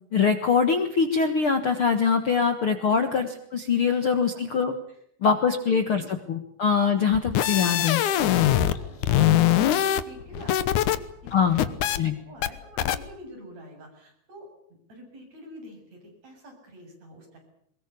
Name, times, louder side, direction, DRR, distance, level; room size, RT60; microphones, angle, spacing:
voice 1, 0.1-4.7 5.2-6.0 6.3-8.0 11.3-11.6 12.0-12.1, left 6 dB, 50° left, 8 dB, 1.7 m, -23 dB
voice 2, 5.7-6.1 6.9-7.0 7.5-8.4 8.7-10.9 11.2-14.5 14.9-17.4, equal, 45° right, 2 dB, 9.3 m, -47 dB
sound 1, 7.1-8.8 9.0-11.0 11.3-12.0 12.4-12.5 12.8-13.0, left 12 dB, 65° left, 2.3 m, -22 dB
22.5 x 21.5 x 8.5 m, 0.70 s
omnidirectional pair, 4.4 m